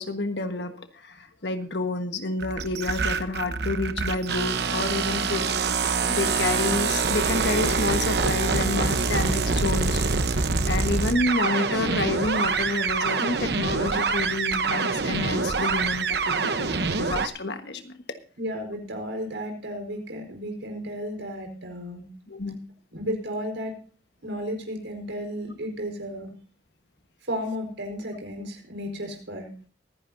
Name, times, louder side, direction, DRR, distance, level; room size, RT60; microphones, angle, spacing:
voice 1, 0.0-5.4 5.8-10.2 10.7-18.2 22.3-22.6, left 2 dB, 65° left, 8 dB, 1.4 m, -29 dB
sound 1, 2.4-17.3, right 4 dB, 60° right, 1.0 m, -25 dB
voice 2, 18.4-22.0 22.9-23.7 24.2-26.3 27.2-29.5, equal, 85° right, 3 dB, 4.7 m, -33 dB
23.5 x 10.5 x 2.7 m, 0.40 s
head